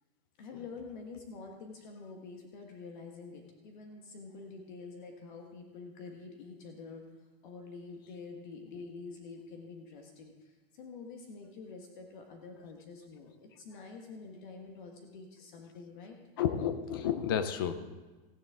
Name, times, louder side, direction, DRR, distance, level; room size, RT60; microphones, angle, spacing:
voice 1, 0.4-7.0 7.4-10.3 10.7-16.2, left 4 dB, 55° left, 2 dB, 1.5 m, -47 dB
voice 2, 16.4-17.7, left 9 dB, 25° left, 11 dB, 0.3 m, -31 dB
15.5 x 10.5 x 3.7 m, 1.2 s
supercardioid pair, 170°, 30 cm